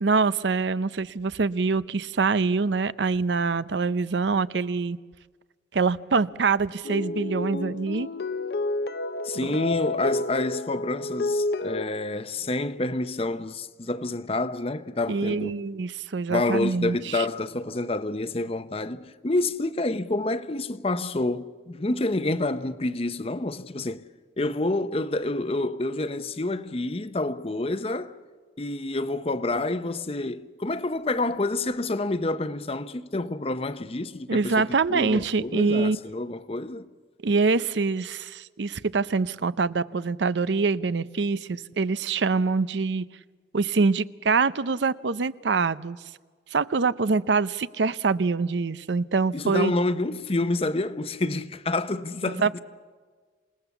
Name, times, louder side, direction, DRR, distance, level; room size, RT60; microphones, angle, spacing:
voice 1, 0.0-5.0 5.7-8.1 9.4-9.5 15.1-17.3 34.3-36.0 37.2-43.1 43.5-46.0 46.5-49.7 52.2-52.6, right 4 dB, 85° right, 0.6 m, -25 dB
sound 1, 6.8-11.8, left 2 dB, 65° left, 0.7 m, -30 dB
voice 2, 9.2-15.5 16.3-24.0 24.4-28.2 28.6-36.9 49.3-52.5, left 2 dB, 35° left, 0.7 m, -28 dB
27.5 x 19.0 x 7.1 m
head